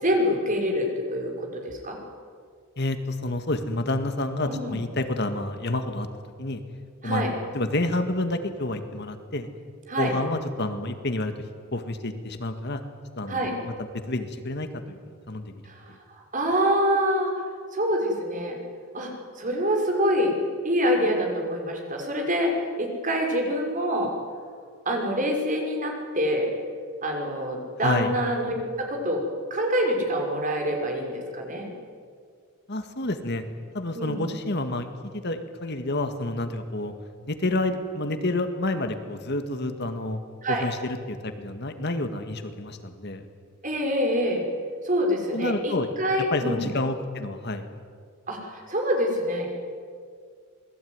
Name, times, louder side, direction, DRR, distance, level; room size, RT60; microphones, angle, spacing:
voice 1, 0.0-2.0 4.5-4.7 7.0-7.3 9.9-10.1 13.3-13.5 15.6-17.3 17.7-18.6 18.9-19.1 19.4-20.3 20.6-24.1 24.9-26.5 27.0-29.2 29.5-31.7 33.9-34.3 40.4-40.7 43.6-44.4 44.8-46.7 48.3-49.6, equal, 40° right, 2 dB, 5.8 m, -26 dB
voice 2, 2.8-6.1 6.4-6.6 7.0-7.2 7.5-9.5 10.0-11.3 11.7-12.8 13.2-15.0 15.3-15.6 15.9-16.0 27.8-28.1 32.7-33.4 33.7-34.9 35.1-36.9 37.3-40.2 40.5-43.2 45.3-45.9 46.3-47.7, left 2 dB, 50° left, 8 dB, 1.9 m, -29 dB
27.5 x 20.5 x 9.7 m, 2.1 s
head